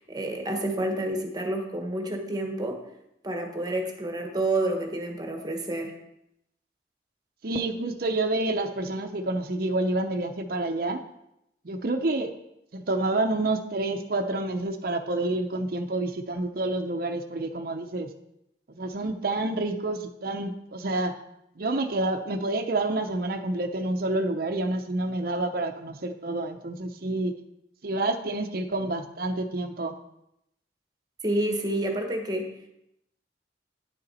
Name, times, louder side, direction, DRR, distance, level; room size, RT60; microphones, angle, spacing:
voice 1, 0.0-2.9 3.2-6.0 31.2-32.5, right 1 dB, 20° right, 3 dB, 1.1 m, -29 dB
voice 2, 7.4-11.0 11.6-12.3 12.7-18.1 18.8-21.1 21.6-27.3 27.8-30.0, right 2 dB, 55° right, 5 dB, 0.7 m, -28 dB
9.8 x 6.7 x 4.2 m, 0.81 s
head